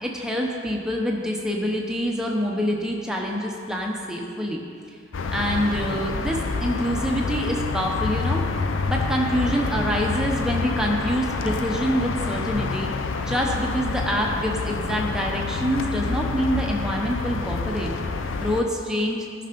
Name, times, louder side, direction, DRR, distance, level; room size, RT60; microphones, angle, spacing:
voice 1, 0.0-4.6 5.3-8.4 8.9-12.9 13.2-17.9 18.4-19.3, equal, 5° right, -1 dB, 1.0 m, -26 dB
sound 1, 5.1-18.6, left 4 dB, 90° left, 0.6 m, -28 dB
13.0 x 5.7 x 5.3 m, 2.3 s
head